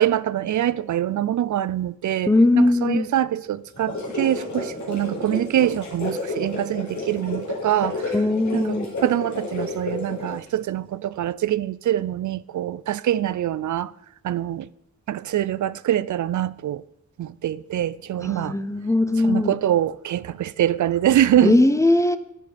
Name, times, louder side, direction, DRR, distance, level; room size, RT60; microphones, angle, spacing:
voice 1, 0.0-8.1 8.5-13.9 14.2-14.7 15.1-16.8 17.2-18.6 19.2-21.6, right 11 dB, 85° right, 0.5 m, -24 dB
voice 2, 2.3-3.1 8.1-8.9 18.2-19.5 21.4-22.2, left 2 dB, 10° left, 0.8 m, -19 dB
sound 1, 3.7-10.5, left 2 dB, 75° left, 4.5 m, -31 dB
11.0 x 10.5 x 5.1 m
wide cardioid pair, 140°, 29 cm